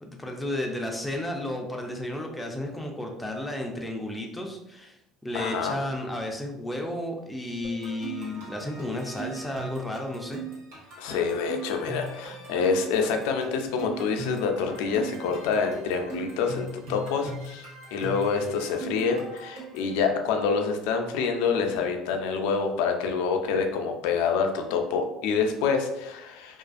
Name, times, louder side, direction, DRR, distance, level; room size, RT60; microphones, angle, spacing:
voice 1, 0.0-10.4, left 1 dB, 5° left, 1 dB, 0.4 m, -33 dB
voice 2, 5.3-5.8 11.0-17.6 17.9-26.6, left 5 dB, 85° left, 4 dB, 0.3 m, -27 dB
sound 1, 7.6-19.9, right 2 dB, 80° right, 1.1 m, -39 dB
2.4 x 2.3 x 2.4 m, 0.88 s
cardioid pair, 130°, 0 cm